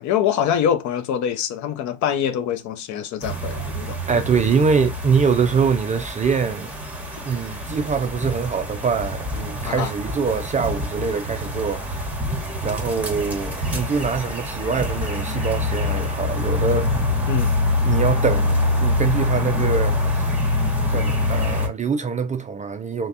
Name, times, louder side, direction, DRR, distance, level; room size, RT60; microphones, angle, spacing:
voice 1, 0.0-4.2 9.6-9.9 17.3-17.5, left 9 dB, 50° left, 0.6 m, -24 dB
sound 1, 3.2-21.7, left 2 dB, 5° right, 1.0 m, -25 dB
voice 2, 4.1-6.7 7.2-12.0 12.6-16.9 17.8-20.4 20.9-23.1, right 5 dB, 20° right, 0.3 m, -24 dB
3.2 x 2.2 x 2.6 m
hypercardioid pair, 65°, 38 cm